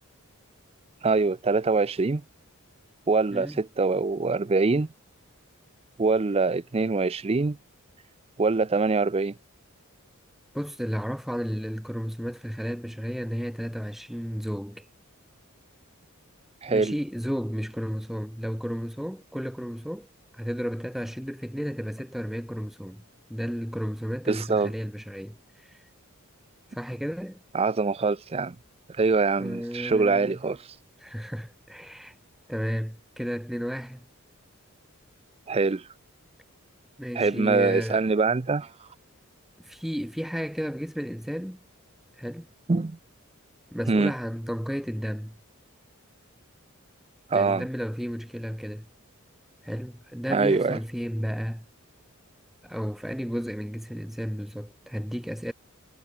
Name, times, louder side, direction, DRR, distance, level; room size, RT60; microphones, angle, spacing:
voice 1, 1.0-2.2 3.1-4.9 6.0-7.6 8.4-9.3 16.6-16.9 24.3-24.7 27.5-28.6 29.0-30.6 35.5-35.8 37.2-38.7 42.7-43.0 43.9-44.1 47.3-47.7 50.3-50.8, right 3 dB, 30° right, 0.5 m, -24 dB
voice 2, 10.5-14.9 16.7-20.1 20.3-23.0 23.3-25.8 26.7-27.4 29.4-30.4 31.0-32.1 32.5-34.0 37.0-38.0 39.6-41.6 42.2-42.5 43.7-45.3 47.3-48.9 49.6-51.6 52.6-55.5, equal, ahead, 2.3 m, -33 dB
head